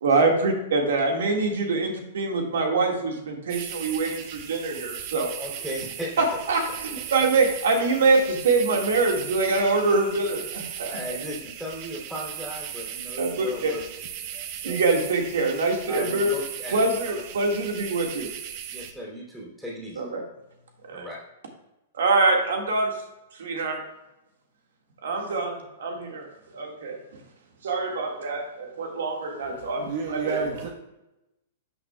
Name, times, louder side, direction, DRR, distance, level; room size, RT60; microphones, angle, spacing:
voice 1, 0.0-5.3 6.2-11.0 13.2-13.7 14.6-16.3 16.7-18.3 20.0-20.2 20.8-21.1 21.9-22.9 23.3-23.8 25.0-27.0 27.6-30.5, right 3 dB, 85° right, 2 dB, 1.7 m, -24 dB
sound 1, 3.5-18.9, right 9 dB, 40° right, 0.8 m, -38 dB
voice 2, 5.4-6.1 10.8-13.8 14.2-14.8 15.9-17.2 18.7-20.0 20.9-21.2, equal, 5° right, -5 dB, 2.7 m, -37 dB
voice 3, 29.4-30.7, right 5 dB, 60° right, 1 dB, 1.2 m, -31 dB
12.0 x 6.1 x 2.3 m, 0.94 s
hypercardioid pair, 150°, 0 cm